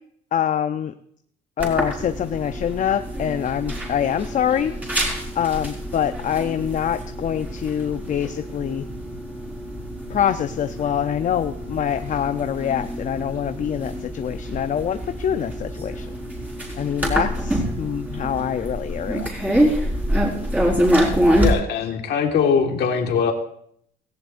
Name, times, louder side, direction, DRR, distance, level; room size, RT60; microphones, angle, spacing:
voice 1, 0.3-0.9 1.6-4.7 5.3-8.9 10.1-16.1 16.7-19.3, left 9 dB, 40° left, 9 dB, 0.6 m, -25 dB
sound 1, 1.6-21.5, equal, 10° right, 4.7 m, -26 dB
voice 2, 21.4-23.3, left 6 dB, 55° left, 3 dB, 1.8 m, -21 dB
17.5 x 15.5 x 2.6 m, 0.66 s
cardioid pair, 105°, 20 cm